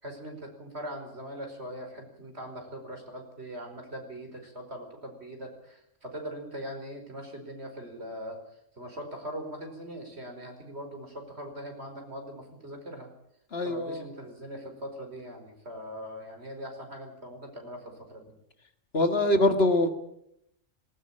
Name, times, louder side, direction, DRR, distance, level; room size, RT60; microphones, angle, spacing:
voice 1, 0.0-8.4 8.8-13.1 13.6-18.3, equal, 55° right, 4 dB, 5.3 m, -41 dB
voice 2, 13.5-14.0 18.9-19.9, left 1 dB, 55° left, 7 dB, 2.2 m, -23 dB
19.0 x 19.0 x 8.8 m, 0.76 s
omnidirectional pair, 1.3 m